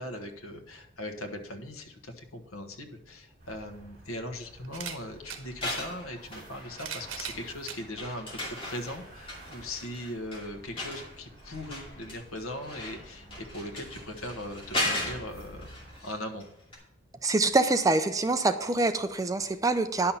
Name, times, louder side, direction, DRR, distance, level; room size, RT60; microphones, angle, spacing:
voice 1, 0.0-16.5, left 1 dB, 90° left, 5 dB, 1.3 m, -39 dB
sound 1, 3.2-3.3 4.6-5.4 6.4-7.8 8.6-8.7 9.9-10.0, right 7 dB, 70° right, 1.2 m, -39 dB
sound 2, 3.4-16.0, right 1 dB, 40° right, 3.3 m, -51 dB
sound 3, 5.4-7.1 7.4-16.4 16.7-16.8, left 1 dB, 25° left, 2.6 m, -37 dB
voice 2, 17.2-20.1, right 3 dB, 15° right, 9 dB, 0.4 m, -25 dB
10.5 x 5.8 x 5.7 m, 0.83 s
head